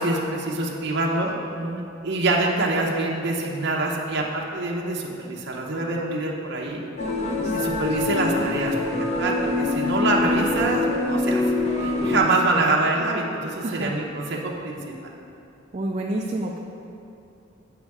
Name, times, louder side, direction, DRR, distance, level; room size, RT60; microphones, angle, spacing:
voice 1, 0.0-1.4 2.0-6.8 7.5-11.4 11.8-14.8, right 2 dB, 65° right, -1 dB, 0.9 m, -25 dB
voice 2, 1.6-1.9 7.4-7.7 12.0-12.6 13.6-13.9 15.7-16.6, right 1 dB, 35° right, -1 dB, 0.4 m, -30 dB
sound 1, 7.0-12.2, left 2 dB, 35° left, 0.8 m, -24 dB
8.2 x 5.3 x 4.8 m, 2.7 s
head